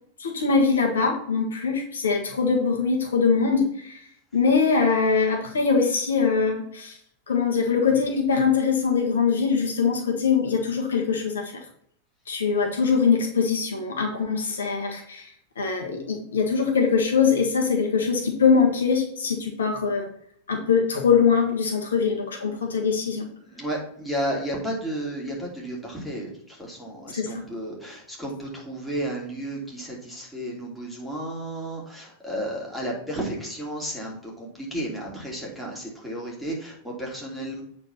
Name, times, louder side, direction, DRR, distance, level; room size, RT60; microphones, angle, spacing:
voice 1, 0.2-4.0 4.3-7.0 7.3-11.5 12.3-15.3 15.6-20.1 20.5-23.2 27.1-27.4, left 5 dB, 65° left, 1 dB, 1.5 m, -22 dB
voice 2, 23.4-37.6, right 1 dB, ahead, -4 dB, 3.1 m, -33 dB
8.7 x 4.4 x 5.8 m, 0.67 s
figure-of-eight pair, 90°, 0 cm